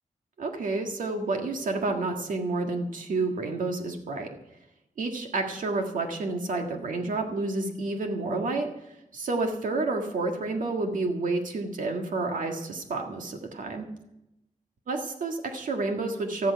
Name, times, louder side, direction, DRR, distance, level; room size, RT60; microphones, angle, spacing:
voice 1, 0.4-4.3 5.0-13.9 14.9-16.5, right 3 dB, 85° right, 3 dB, 1.8 m, -30 dB
14.0 x 12.0 x 5.8 m, 0.87 s
wide cardioid pair, 135°, 13 cm